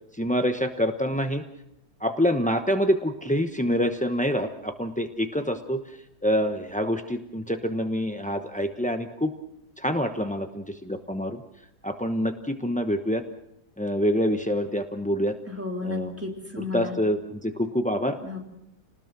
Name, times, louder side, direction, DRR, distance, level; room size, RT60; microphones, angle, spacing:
voice 1, 0.1-1.4 2.0-5.8 6.2-9.3 9.8-11.4 11.8-13.2 13.8-15.3 15.8-16.1 16.6-18.2, equal, 10° left, 5 dB, 0.4 m, -26 dB
voice 2, 15.5-16.9 18.2-18.4, left 3 dB, 5° right, 0 dB, 3.7 m, -33 dB
29.0 x 19.5 x 6.1 m, 0.82 s
omnidirectional pair, 2.1 m